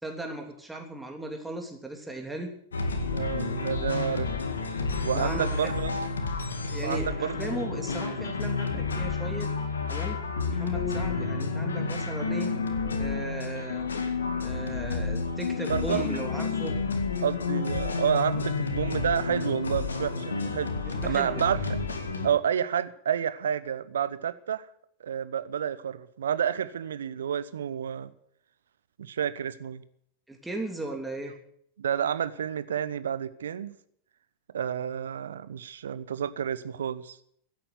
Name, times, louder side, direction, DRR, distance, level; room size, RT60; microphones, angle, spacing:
voice 1, 0.0-2.5 5.1-5.7 6.7-9.5 9.9-10.2 10.5-12.5 13.0-13.9 14.4-16.7 20.8-21.4 30.3-31.3, right 1 dB, 5° right, 2 dB, 3.0 m, -37 dB
sound 1, 2.7-22.3, left 4 dB, 80° left, 2.0 m, -30 dB
voice 2, 3.1-4.3 5.0-5.9 6.8-7.4 8.1-8.2 15.7-16.1 17.2-20.7 21.0-21.8 22.2-24.7 25.0-28.1 29.0-29.8 31.8-33.7 34.5-37.2, right 8 dB, 70° right, 15 dB, 0.9 m, -30 dB
16.0 x 8.8 x 9.5 m, 0.68 s
figure-of-eight pair, 90°, 0 cm